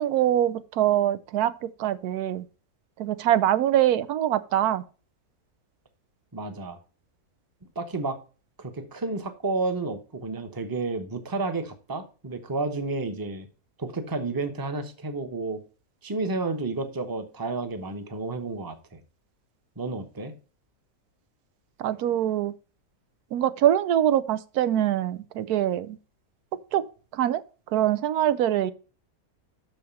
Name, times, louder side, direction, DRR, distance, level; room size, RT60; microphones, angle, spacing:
voice 1, 0.0-2.5 3.0-4.8 21.8-22.5 23.3-26.0 26.7-26.8 27.1-27.4 27.7-28.7, right 11 dB, 85° right, 1.2 m, -24 dB
voice 2, 6.3-6.8 7.8-8.2 8.6-13.5 13.8-15.6 16.0-19.0 19.8-20.3, right 3 dB, 15° right, 0.8 m, -31 dB
6.4 x 5.7 x 6.9 m
omnidirectional pair, 1.6 m